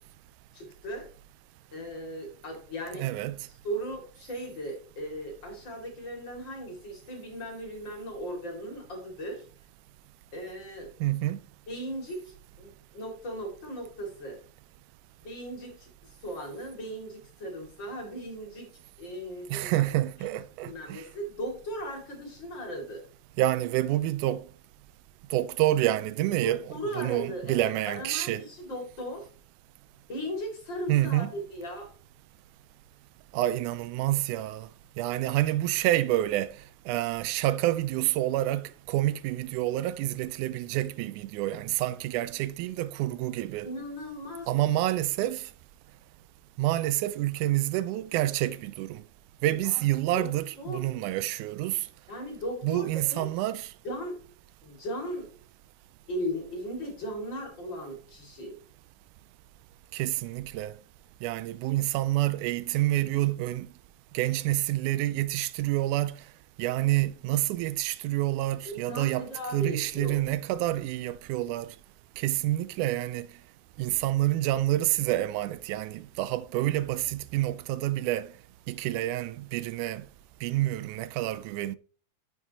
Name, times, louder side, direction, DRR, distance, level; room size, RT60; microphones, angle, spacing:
voice 1, 0.5-1.1 1.7-3.1 3.6-9.4 10.3-10.9 11.7-14.4 15.2-15.9 16.2-18.7 19.0-19.8 20.2-20.4 20.6-23.0 26.4-29.3 30.1-31.9 43.6-44.5 49.6-49.8 50.1-50.3 50.6-50.9 52.1-53.2 53.8-54.2 54.6-55.3 56.1-58.5 68.6-70.2, equal, 40° left, 3.0 m, -37 dB
voice 2, 2.9-3.4 11.0-11.4 19.5-21.0 23.4-24.4 25.3-28.5 30.9-31.3 33.3-34.7 35.0-36.6 36.9-43.7 44.5-45.5 46.6-49.0 49.4-51.9 52.6-53.7 59.9-60.8 61.2-63.7 64.1-66.2 66.6-71.8 72.2-73.3 73.8-78.3 78.7-80.1 80.4-81.8, right 15 dB, 85° right, 2.0 m, -28 dB
9.4 x 7.1 x 2.9 m
omnidirectional pair, 3.5 m